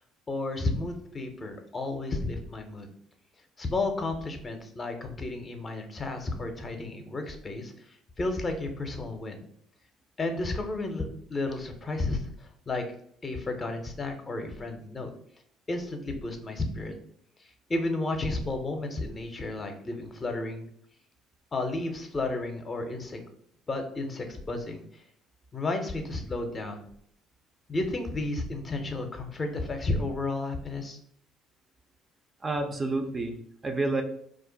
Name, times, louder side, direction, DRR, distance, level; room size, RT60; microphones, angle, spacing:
voice 1, 0.3-2.9 3.6-9.5 10.2-12.8 13.2-15.1 15.7-16.9 17.7-20.7 21.5-23.2 23.7-25.0 25.5-26.9 27.7-31.0, left 2 dB, 35° left, 5 dB, 0.6 m, -32 dB
voice 2, 32.4-34.0, right 2 dB, 30° right, 6 dB, 0.4 m, -29 dB
2.4 x 2.1 x 3.8 m, 0.68 s
hypercardioid pair, 60°, 0 cm